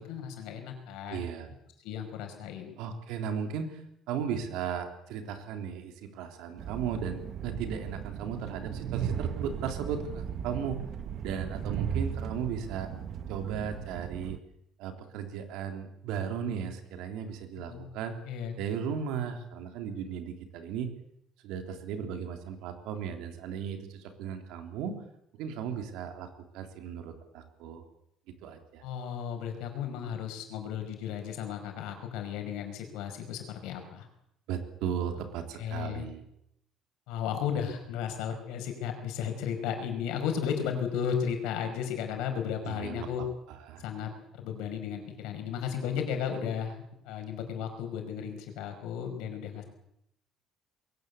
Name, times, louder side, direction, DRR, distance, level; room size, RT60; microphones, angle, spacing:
voice 1, 0.0-1.3 1.8-2.7 17.6-17.9 18.2-18.6 28.8-34.1 35.6-36.1 37.1-43.2 43.8-49.6, left 8 dB, 90° left, 5 dB, 5.2 m, -34 dB
voice 2, 1.1-1.5 2.8-10.8 11.2-12.9 13.3-14.4 14.8-18.2 18.6-20.9 21.4-25.0 25.4-27.8 28.4-28.8 34.5-36.2 42.6-43.8, right 7 dB, 80° right, 5 dB, 3.3 m, -36 dB
Train, 6.6-14.4, right 8 dB, 40° right, 1.1 m, -36 dB
21.5 x 17.5 x 8.3 m, 0.77 s
cardioid pair, 170°, 0 cm